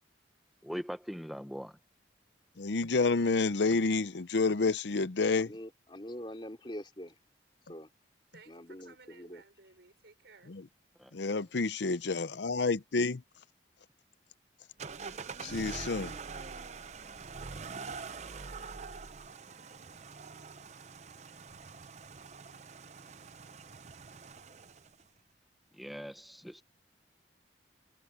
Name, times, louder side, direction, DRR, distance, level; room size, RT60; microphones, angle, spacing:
voice 1, 0.6-1.8 11.0-11.1 25.8-26.6, equal, ahead, 0.7 m, -41 dB
voice 2, 2.6-5.5 10.5-10.7 11.1-13.2 15.4-16.2, left 3 dB, 70° left, 0.7 m, -29 dB
voice 3, 5.3-7.1 7.7-7.9 8.5-9.4, equal, 25° left, 3.0 m, -44 dB
voice 4, 8.3-10.5, right 3 dB, 70° right, 4.4 m, -58 dB
sound 1, 14.8-25.0, right 4 dB, 35° right, 0.6 m, -45 dB
head